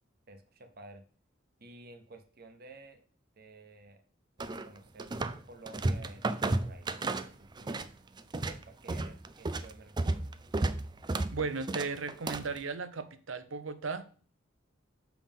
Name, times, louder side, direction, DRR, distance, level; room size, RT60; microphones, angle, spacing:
voice 1, 0.3-1.0 1.6-3.0 3.4-4.0 4.4-5.1 5.4-7.8 8.4-10.4, right 2 dB, 50° right, 7 dB, 1.1 m, -53 dB
sound 1, 4.4-5.4 5.7-7.9 8.2-12.6, right 2 dB, 25° right, 0.4 m, -32 dB
voice 2, 11.3-14.1, right 4 dB, 85° right, 11 dB, 0.8 m, -36 dB
7.2 x 5.8 x 3.6 m, 0.42 s
head